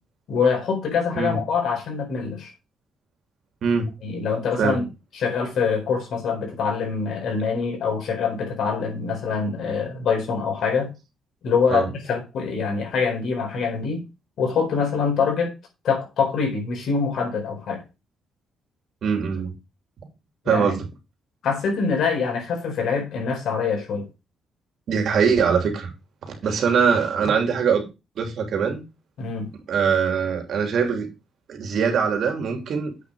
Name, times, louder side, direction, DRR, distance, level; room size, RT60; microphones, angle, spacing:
voice 1, 0.3-2.5 4.0-4.9 5.1-10.9 11.4-14.0 14.4-15.5 15.8-17.8 20.5-20.8 21.4-24.1 29.2-29.5, left 5 dB, 65° left, 4.4 m, -24 dB
voice 2, 3.6-3.9 4.6-4.8 11.7-11.9 19.0-19.5 20.5-20.8 24.9-25.9 26.3-27.8 28.2-28.8 29.7-31.1 31.5-32.9, right 6 dB, 65° right, 3.0 m, -22 dB
8.3 x 6.2 x 4.8 m
cardioid pair, 90°, 0 cm